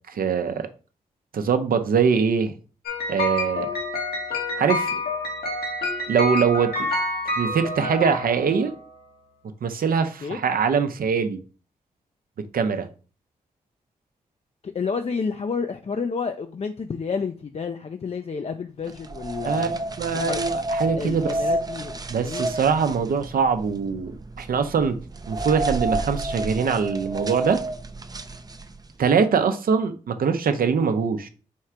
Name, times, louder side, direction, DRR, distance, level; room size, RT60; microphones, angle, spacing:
voice 1, 0.1-0.7 1.3-2.5 3.1-3.8 4.6-5.0 6.1-6.9 7.4-8.7 9.6-11.4 12.5-12.9 19.5-21.4 22.1-25.0 25.3-27.6 29.0-31.3, right 6 dB, 70° right, 0.7 m, -23 dB
sound 1, 2.9-8.9, left 1 dB, 80° left, 1.4 m, -28 dB
voice 2, 14.6-19.7 20.1-20.4 20.9-21.9 22.2-22.5, left 5 dB, 40° left, 0.5 m, -30 dB
sound 2, 18.9-28.9, right 2 dB, 25° right, 0.5 m, -30 dB
4.5 x 2.4 x 4.4 m
supercardioid pair, 45°, 16 cm